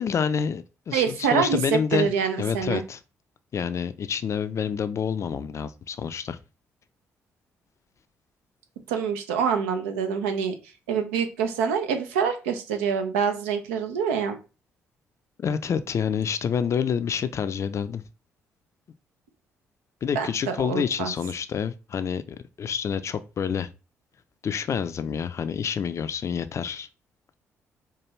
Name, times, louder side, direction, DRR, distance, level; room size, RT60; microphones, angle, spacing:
voice 1, 0.0-2.1 2.4-3.0 3.5-6.4 15.4-18.0 20.0-23.7 24.4-26.9, left 7 dB, 45° left, 0.4 m, -28 dB
voice 2, 0.9-1.6 1.9-2.8 8.9-10.5 10.9-14.4 20.1-21.1, right 6 dB, 75° right, 0.5 m, -26 dB
4.6 x 2.3 x 3.0 m
figure-of-eight pair, 45°, 7 cm